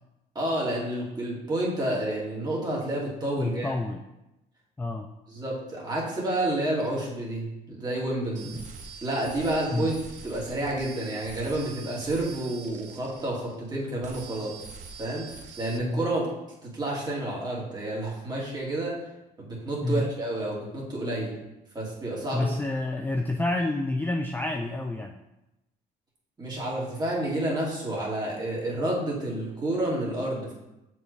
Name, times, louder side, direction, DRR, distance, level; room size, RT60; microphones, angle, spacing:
voice 1, 0.3-3.7 5.3-8.6 9.0-9.9 10.2-14.6 15.0-15.3 15.6-16.3 16.6-19.0 19.4-21.3 21.7-22.5 26.4-30.5, right 1 dB, 25° right, -5 dB, 2.2 m, -29 dB
voice 2, 3.4-4.0 4.8-5.1 8.5-8.7 9.7-9.9 15.8-16.0 19.8-20.1 22.3-25.2, left 2 dB, 10° left, 3 dB, 0.4 m, -29 dB
sound 1, 8.3-13.7 14.0-15.8, right 5 dB, 45° right, 0.9 m, -44 dB
6.7 x 4.6 x 3.3 m, 0.94 s
cardioid pair, 110°, 17 cm